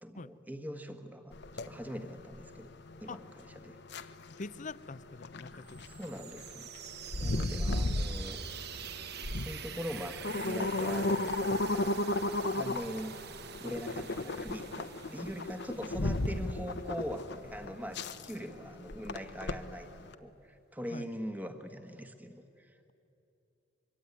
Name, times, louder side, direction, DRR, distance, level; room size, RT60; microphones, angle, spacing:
voice 1, 0.0-1.3 1.6-3.8 5.8-6.7 7.1-8.4 9.3-11.3 12.3-22.8, equal, 10° right, 7 dB, 1.4 m, -42 dB
sound 1, 1.3-20.1, left 2 dB, 60° left, 1.0 m, -35 dB
voice 2, 4.4-5.8 7.2-7.8 11.8-11.9 20.9-21.1, left 3 dB, 40° left, 16 dB, 0.6 m, -44 dB
sound 2, 5.6-17.3, right 8 dB, 55° right, 0.9 m, -46 dB
24.5 x 23.5 x 9.6 m, 2.9 s
head